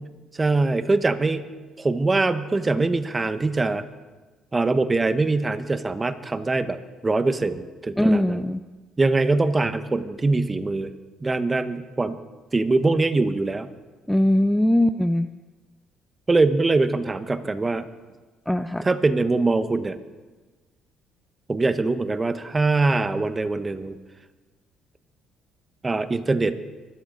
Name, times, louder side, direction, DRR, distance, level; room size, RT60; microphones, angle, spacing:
voice 1, 0.3-1.4 1.8-3.8 4.5-6.8 7.0-8.4 9.0-10.9 11.2-12.2 12.5-13.7 16.3-17.9 18.8-20.0 21.5-24.0 25.8-26.6, right 3 dB, 20° right, 11 dB, 1.1 m, -23 dB
voice 2, 8.0-8.6 14.1-15.3 18.5-18.9, left 1 dB, 5° left, 11 dB, 0.5 m, -20 dB
24.5 x 13.0 x 4.0 m, 1.3 s
cardioid pair, 90°, 0 cm